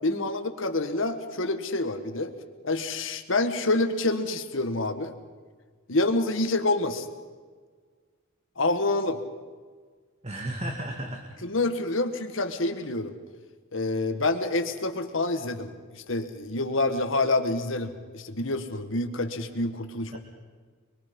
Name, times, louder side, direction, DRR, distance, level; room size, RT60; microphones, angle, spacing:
voice 1, 0.0-2.3 2.6-5.1 5.9-7.0 8.6-9.2 11.4-13.1 13.7-20.2, left 2 dB, 65° left, 7 dB, 1.7 m, -27 dB
voice 2, 10.2-11.2 20.1-20.2, right 1 dB, 30° right, 2 dB, 2.0 m, -34 dB
24.5 x 23.0 x 5.5 m, 1.5 s
head